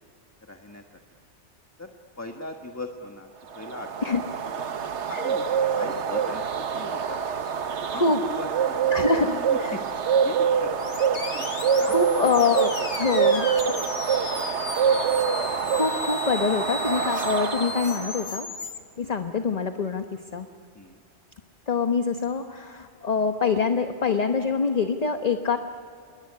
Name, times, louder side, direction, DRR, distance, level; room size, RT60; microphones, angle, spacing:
voice 1, 0.4-1.0 1.8-1.9 2.2-4.6 5.1-7.2 7.8-10.7 11.3-13.2 14.0-14.6 20.7-21.0, left 2 dB, 15° left, 3 dB, 1.4 m, -40 dB
sound 1, 3.6-18.2, right 7 dB, 65° right, 1.2 m, -25 dB
voice 2, 8.9-9.7 11.9-12.7 13.0-13.5 13.8-13.9 15.5-18.5 19.0-20.0 20.3-20.5 21.7-25.6, left 5 dB, 35° left, 6 dB, 1.1 m, -25 dB
sound 2, 10.8-18.8, left 4 dB, 75° left, 2.1 m, -36 dB
27.0 x 22.0 x 9.7 m, 2.5 s
omnidirectional pair, 1.3 m